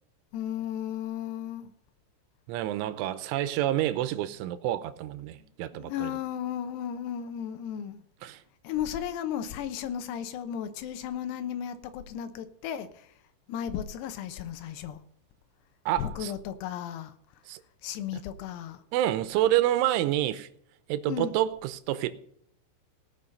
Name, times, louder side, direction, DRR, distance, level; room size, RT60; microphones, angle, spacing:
voice 1, 0.3-1.7 5.3-5.4 5.7-8.0 8.6-13.1 13.5-15.0 16.0-17.1 17.8-18.8 21.1-21.3, left 9 dB, 80° left, 2.6 m, -34 dB
voice 2, 2.5-6.1 8.2-8.4 15.9-16.3 17.5-17.6 18.9-20.5 20.9-22.1, right 13 dB, 85° right, 3.1 m, -28 dB
18.0 x 6.2 x 5.3 m
omnidirectional pair, 5.7 m